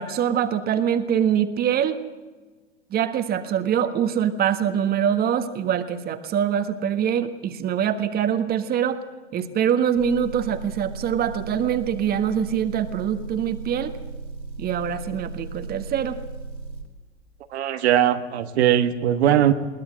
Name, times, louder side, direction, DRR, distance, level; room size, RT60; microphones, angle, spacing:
voice 1, 0.0-2.0 2.9-9.0 9.3-13.9 14.6-16.2, right 9 dB, 25° right, 9 dB, 1.5 m, -24 dB
Motor vehicle (road) / Engine, 10.0-16.9, right 4 dB, 85° right, 4.4 m, -36 dB
voice 2, 17.5-19.5, right 11 dB, 65° right, 8 dB, 1.5 m, -20 dB
21.5 x 18.5 x 7.7 m, 1.3 s
hypercardioid pair, 105°, 36 cm